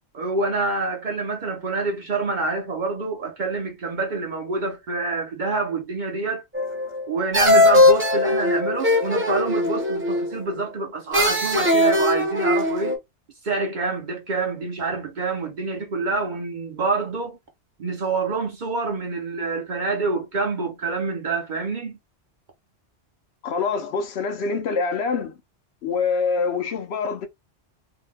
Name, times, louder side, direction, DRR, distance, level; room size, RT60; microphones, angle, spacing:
voice 1, 0.1-6.4 7.1-13.0 13.4-17.4 17.8-22.0, right 3 dB, 50° right, 0.7 m, -27 dB
sound 1, 6.5-7.0 7.3-10.4 11.1-13.0, left 2 dB, 15° right, 0.7 m, -19 dB
voice 2, 23.4-25.3 25.8-27.3, left 5 dB, 70° left, 0.8 m, -25 dB
2.8 x 2.1 x 3.3 m
omnidirectional pair, 1.2 m